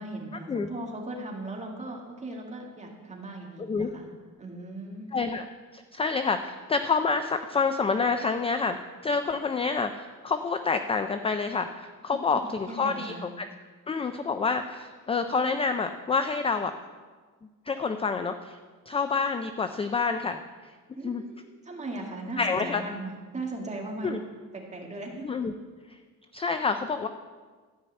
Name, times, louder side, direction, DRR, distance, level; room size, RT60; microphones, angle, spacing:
voice 1, 0.0-4.1 4.4-5.1 12.1-13.3 21.0-24.1 24.5-25.3, right 2 dB, 20° right, -1 dB, 2.0 m, -38 dB
voice 2, 5.1-5.4 5.7-13.5 13.9-16.7 17.7-18.6 18.9-20.4 21.0-21.2 22.4-22.8 24.0-24.2 25.2-25.5 26.3-27.1, left 4 dB, 20° left, 8 dB, 0.3 m, -28 dB
13.0 x 5.6 x 8.6 m, 1.5 s
cardioid pair, 165°, 35 cm